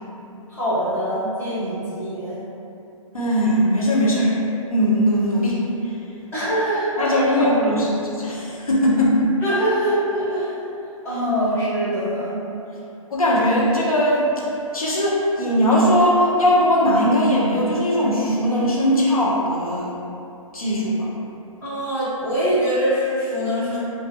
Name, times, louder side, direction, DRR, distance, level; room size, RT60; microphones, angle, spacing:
voice 1, 0.5-2.4 6.3-7.5 9.4-10.5 11.0-12.4 21.6-23.8, equal, 15° left, -11 dB, 0.9 m, -23 dB
voice 2, 3.1-4.3 4.7-6.0 7.0-9.2 13.1-14.3 14.7-20.0 20.5-21.1, equal, 80° left, -5 dB, 0.8 m, -19 dB
3.0 x 2.4 x 2.7 m, 2.9 s
figure-of-eight pair, 130°, 18 cm